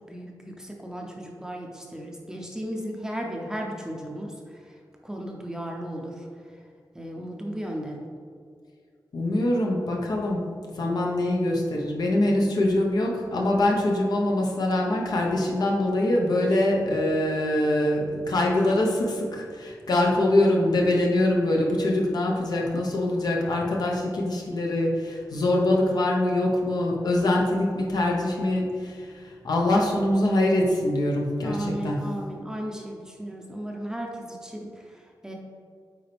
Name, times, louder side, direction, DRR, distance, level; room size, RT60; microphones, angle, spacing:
voice 1, 0.1-4.3 5.0-6.2 6.9-8.0 31.4-34.8 35.2-35.3, equal, 10° right, 0 dB, 0.7 m, -35 dB
voice 2, 9.1-10.4 10.7-32.0, left 1 dB, 65° left, -1 dB, 1.1 m, -24 dB
8.9 x 4.0 x 3.5 m, 2.2 s
wide cardioid pair, 120°, 7 cm